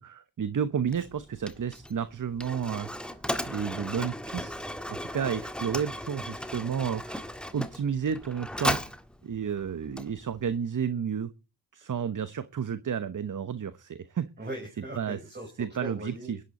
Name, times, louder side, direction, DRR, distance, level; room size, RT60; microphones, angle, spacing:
voice 1, 0.0-3.1 3.5-8.8 9.2-11.3 11.7-14.3 15.0-15.2 15.6-16.4, right 7 dB, 45° right, 14 dB, 0.9 m, -32 dB
Mechanisms, 0.9-10.6, equal, ahead, 1.6 m, -36 dB
voice 2, 14.4-16.3, right 1 dB, 25° right, 1 dB, 4.6 m, -39 dB
16.0 x 11.5 x 4.2 m, 0.31 s
supercardioid pair, 45°, 42 cm